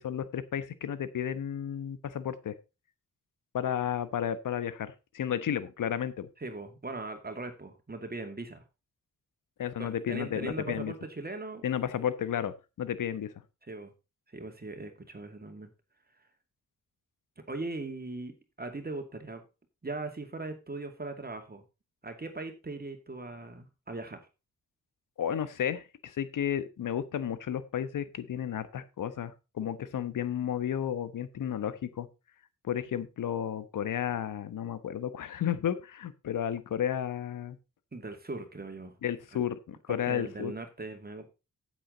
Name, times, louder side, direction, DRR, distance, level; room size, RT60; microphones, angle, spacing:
voice 1, 0.0-2.5 3.5-6.3 9.6-10.9 11.6-13.3 25.2-32.1 32.6-37.6 39.0-40.5, left 9 dB, 75° left, 14 dB, 1.2 m, -32 dB
voice 2, 6.4-8.6 9.8-11.6 13.6-13.9 14.3-15.7 17.4-19.4 19.8-21.6 22.0-24.2 37.9-38.9 39.9-41.3, right 2 dB, 30° right, 6 dB, 2.4 m, -39 dB
8.7 x 8.7 x 3.9 m, 0.28 s
supercardioid pair, 50°, 32 cm